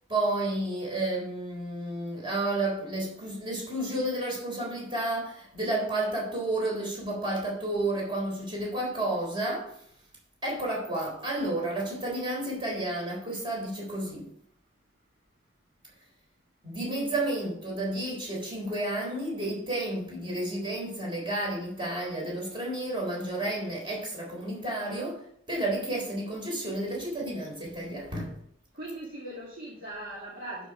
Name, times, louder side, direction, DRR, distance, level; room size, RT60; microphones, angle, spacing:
voice 1, 0.1-9.7 10.4-14.3 16.6-28.3, right 1 dB, 25° right, -2 dB, 3.8 m, -31 dB
voice 2, 28.7-30.7, right 1 dB, 45° right, -5 dB, 2.1 m, -39 dB
11.5 x 5.4 x 5.1 m, 0.66 s
head